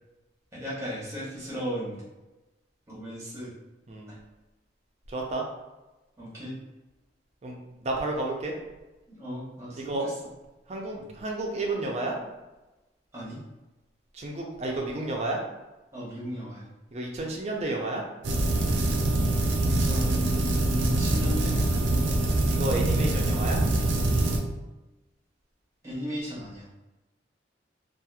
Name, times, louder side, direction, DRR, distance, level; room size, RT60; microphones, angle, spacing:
voice 1, 0.5-2.0 2.9-3.5 4.1-4.2 6.2-6.5 9.1-10.1 10.9-11.0 13.1-13.4 15.9-16.6 19.6-21.8 25.8-26.7, equal, 15° right, -7 dB, 1.0 m, -36 dB
voice 2, 5.1-5.4 7.4-8.5 9.8-10.0 10.7-12.1 14.1-15.4 16.9-18.0 22.5-23.6, right 2 dB, 35° right, 0 dB, 0.5 m, -31 dB
sound 1, 18.2-24.4, right 2 dB, 80° right, 0.5 m, -24 dB
2.9 x 2.4 x 2.3 m, 1.1 s
head